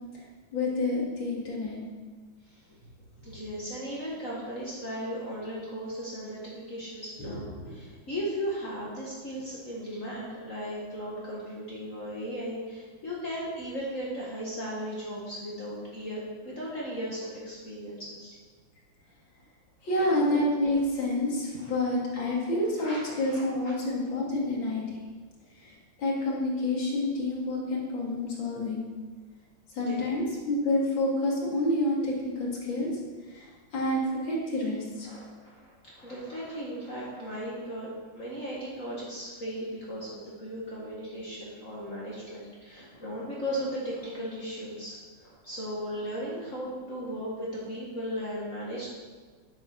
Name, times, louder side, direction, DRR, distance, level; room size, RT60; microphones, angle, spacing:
voice 1, 0.5-1.8 7.2-7.3 7.6-7.7 19.8-25.0 25.6-25.7 26.0-28.8 29.7-32.9 33.3-35.1, left 1 dB, 70° left, -3 dB, 3.2 m, -28 dB
voice 2, 3.2-18.4 19.8-20.1 21.5-21.7 22.8-23.7 29.8-30.0 35.0-48.9, equal, 40° left, -6 dB, 2.1 m, -37 dB
9.6 x 8.9 x 6.1 m, 1.5 s
omnidirectional pair, 2.2 m